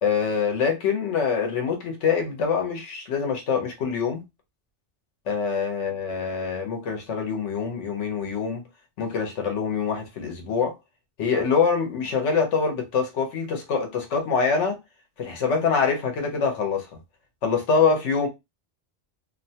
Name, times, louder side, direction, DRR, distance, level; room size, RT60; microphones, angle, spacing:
voice 1, 0.0-4.2 5.3-8.6 9.0-10.7 11.2-14.8 15.2-16.9 17.4-18.3, left 5 dB, 85° left, 1.1 m, -25 dB
2.7 x 2.2 x 2.7 m
omnidirectional pair, 1.2 m